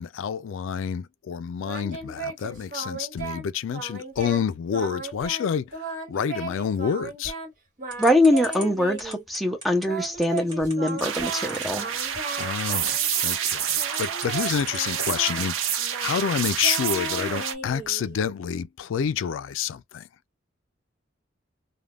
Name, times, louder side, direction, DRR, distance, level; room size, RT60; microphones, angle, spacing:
voice 1, 0.0-7.3 12.4-20.1, left 7 dB, 80° left, 0.3 m, -28 dB
Singing, 1.6-3.5 3.7-4.4 4.7-5.5 5.7-7.5 7.8-9.2 9.8-13.4 13.8-18.2, right 3 dB, 40° right, 1.2 m, -36 dB
sound 1, 7.9-15.0, right 1 dB, 20° right, 1.5 m, -39 dB
voice 2, 8.0-11.9, left 1 dB, ahead, 0.5 m, -23 dB
sound 2, 11.0-17.5, right 9 dB, 85° right, 0.6 m, -28 dB
3.3 x 2.1 x 2.3 m
head